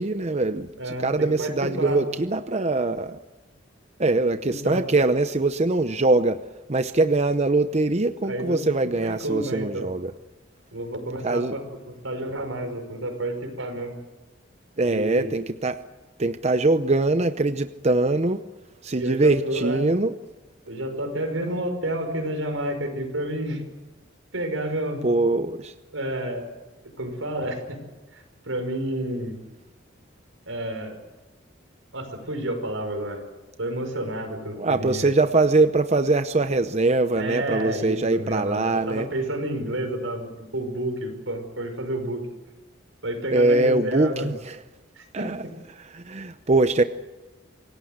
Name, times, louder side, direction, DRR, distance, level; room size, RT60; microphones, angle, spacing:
voice 1, 0.0-3.2 4.0-6.4 6.7-10.1 11.2-11.5 14.8-15.8 16.2-18.4 18.8-20.1 25.0-25.7 34.6-39.1 43.3-44.6 45.1-45.4 45.8-46.8, right 2 dB, 35° right, 10 dB, 0.7 m, -22 dB
voice 2, 0.8-2.0 4.4-4.9 8.2-9.9 10.7-14.0 14.9-15.3 19.0-19.9 20.7-23.6 24.3-25.1 25.9-26.5 27.0-27.8 28.1-29.4 30.5-31.0 31.9-33.2 33.6-35.1 37.2-42.3 43.0-44.3 45.0-45.3, right 1 dB, 90° right, 6 dB, 5.5 m, -30 dB
27.0 x 17.5 x 8.0 m, 1.2 s
head